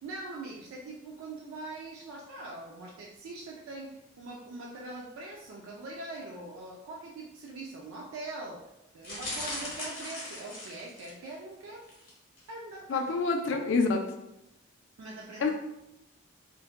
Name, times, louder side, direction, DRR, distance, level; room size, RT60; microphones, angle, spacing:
voice 1, 0.0-8.6 8.9-11.8 12.5-13.0 13.5-13.6 15.0-15.5, right 2 dB, 80° right, -1 dB, 0.3 m, -42 dB
sound 1, 9.0-11.3 11.8-12.1 12.4-12.5, left 1 dB, 45° left, 0.7 m, -39 dB
voice 2, 12.9-14.0 15.4-15.5, left 4 dB, 60° left, 4 dB, 0.3 m, -27 dB
2.5 x 2.1 x 2.3 m, 0.89 s
head